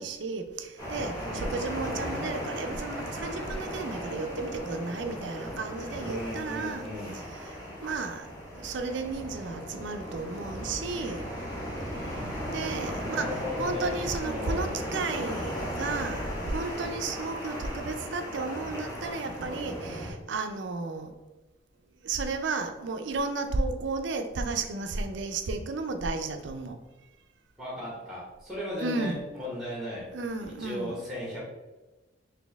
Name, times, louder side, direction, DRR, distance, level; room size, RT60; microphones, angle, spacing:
voice 1, 0.0-6.8 7.3-7.6 7.8-8.3 8.5-11.3 12.5-21.1 22.0-26.7 28.8-29.2 30.1-31.0, right 3 dB, 65° right, 6 dB, 0.4 m, -33 dB
sound 1, 0.8-20.1, equal, 20° left, 1.1 m, -36 dB
voice 2, 1.2-1.7 6.1-7.2 13.0-14.8 27.6-30.1 30.5-31.4, left 1 dB, ahead, -4 dB, 1.0 m, -36 dB
4.2 x 2.7 x 3.4 m, 1.1 s
head